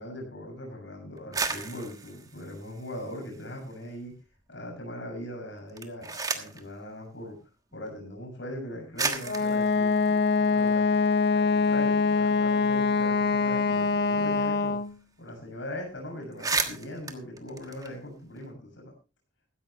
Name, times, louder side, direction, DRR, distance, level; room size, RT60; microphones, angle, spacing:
voice 1, 0.0-4.1 4.5-7.4 7.7-11.0 11.3-14.8 15.2-18.9, left 1 dB, 75° left, 1 dB, 6.7 m, -40 dB
sound 1, 1.2-3.7 4.1-4.8 5.6-6.7 7.7-7.8 8.5-8.6 9.0-11.3 11.6-11.7 12.0-14.6 14.9-15.0 15.3-15.5 15.9-16.0 16.2-18.4, right 4 dB, 20° right, 1.3 m, -35 dB
Wind instrument woodwind instrument, 9.2-14.9, left 4 dB, 60° left, 0.7 m, -24 dB
16.0 x 13.5 x 3.1 m, 0.30 s
head